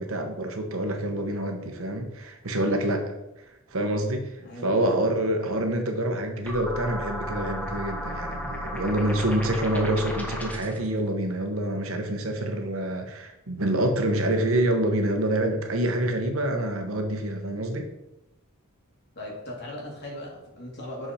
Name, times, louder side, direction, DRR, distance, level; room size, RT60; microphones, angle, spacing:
voice 1, 0.0-3.0 3.7-4.3 4.6-17.9, right 1 dB, 75° right, 4 dB, 1.2 m, -26 dB
voice 2, 4.4-4.9 19.2-21.1, left 1 dB, 55° left, -2 dB, 2.3 m, -38 dB
sound 1, 6.4-10.8, equal, 5° left, 1.0 m, -34 dB
6.4 x 5.3 x 4.3 m, 0.91 s
head